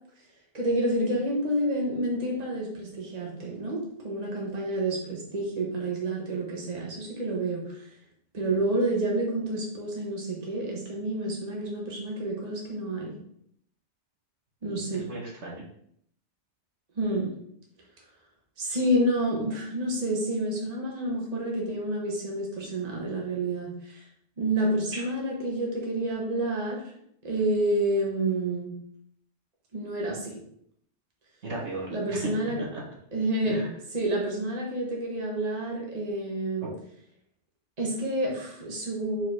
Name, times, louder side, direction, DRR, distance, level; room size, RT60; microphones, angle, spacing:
voice 1, 0.5-7.9 8.3-13.1 14.6-15.1 17.0-17.3 18.6-24.0 24.4-26.8 27.2-28.7 29.7-30.3 31.9-32.6 33.1-33.6 33.9-36.7 37.8-39.3, right 1 dB, 35° right, -2 dB, 1.4 m, -29 dB
voice 2, 14.7-15.6 24.9-25.1 31.4-32.3 32.7-32.8 33.5-33.8, right 2 dB, 75° right, -3 dB, 1.8 m, -36 dB
4.9 x 4.1 x 4.8 m, 0.68 s
omnidirectional pair, 1.2 m